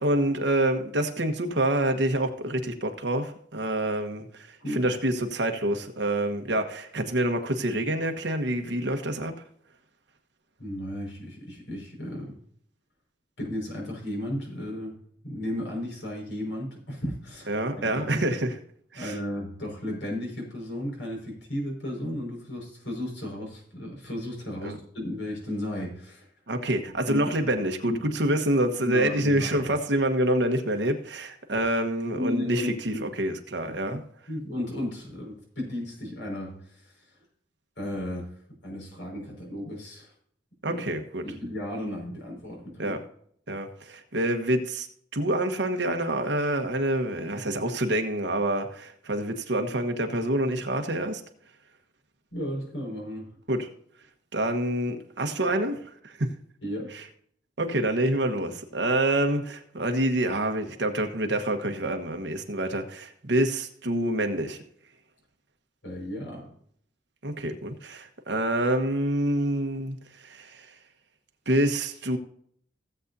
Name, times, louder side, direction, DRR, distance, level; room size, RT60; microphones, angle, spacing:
voice 1, 0.0-9.4 17.5-18.6 18.9-19.2 24.6-24.8 26.5-34.0 40.6-41.2 42.8-43.0 43.5-44.9 45.1-51.2 53.5-53.7 54.3-56.3 56.9-57.0 57.6-64.6 67.2-70.7 71.5-72.2, right 1 dB, 65° right, 1.3 m, -27 dB
voice 2, 10.6-12.4 13.4-15.0 15.2-18.1 19.0-26.3 27.1-27.2 27.8-28.0 28.8-29.6 32.2-33.1 33.9-34.0 34.3-36.9 37.8-38.3 38.6-40.1 40.6-40.8 41.2-43.0 52.3-53.3 56.6-57.0 65.8-66.5, left 1 dB, 75° left, 5.4 m, -34 dB
17.0 x 8.0 x 2.7 m
head